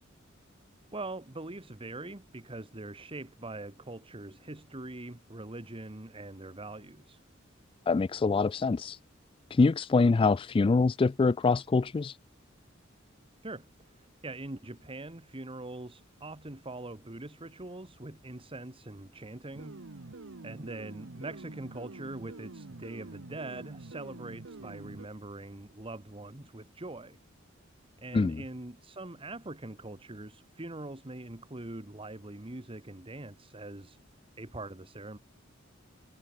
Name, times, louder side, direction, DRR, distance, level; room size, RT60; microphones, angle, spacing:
voice 1, 0.9-7.2 13.4-19.9 20.4-27.2 28.0-34.0 34.4-35.2, right 2 dB, 25° right, 1.5 m, -43 dB
voice 2, 7.9-9.0 9.5-12.2 28.1-28.4, left 4 dB, 25° left, 0.3 m, -25 dB
sound 1, 19.5-25.1, right 2 dB, 80° right, 1.1 m, -46 dB
head